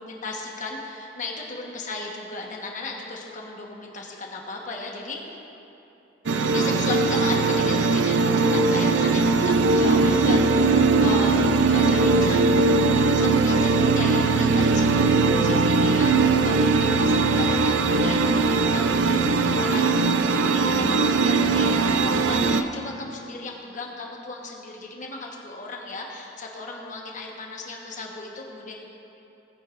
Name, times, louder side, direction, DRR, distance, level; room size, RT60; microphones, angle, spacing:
voice 1, 0.0-5.2 6.3-10.4 10.7-12.6 12.9-28.7, left 2 dB, 45° left, -1 dB, 1.3 m, -35 dB
sound 1, 6.3-22.6, right 3 dB, 85° right, 0.5 m, -20 dB
18.0 x 9.3 x 2.6 m, 2.8 s
head